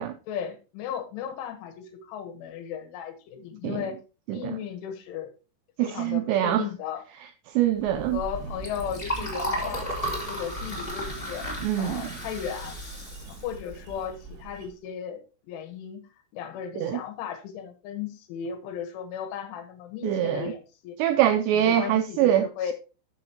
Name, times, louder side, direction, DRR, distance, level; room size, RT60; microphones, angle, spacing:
voice 1, 0.3-4.0 4.3-5.3 5.8-7.0 7.9-11.5 11.8-12.8 13.4-16.0 16.3-21.0 21.5-22.7, left 8 dB, 80° left, 3.8 m, -36 dB
voice 2, 5.8-6.7 7.6-8.2 11.6-12.0 16.8-17.0 20.0-20.5 21.0-22.7, right 11 dB, 90° right, 2.5 m, -24 dB
Liquid, 7.8-14.5, equal, 15° left, 2.6 m, -34 dB
sound 1, 8.3-14.7, right 5 dB, 55° right, 2.3 m, -45 dB
12.5 x 6.4 x 2.9 m
omnidirectional pair, 5.5 m